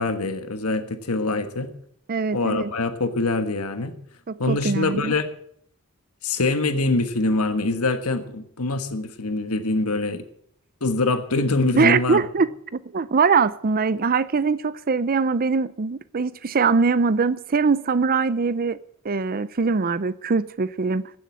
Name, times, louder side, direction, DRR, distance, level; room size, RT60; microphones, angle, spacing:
voice 1, 0.0-1.7 2.3-3.9 4.4-5.3 6.2-10.2 10.8-12.2, left 2 dB, 80° left, 1.4 m, -24 dB
voice 2, 2.1-2.7 4.3-5.1 11.7-18.8 19.0-21.1, right 4 dB, 40° right, 0.5 m, -22 dB
15.5 x 7.9 x 8.5 m
head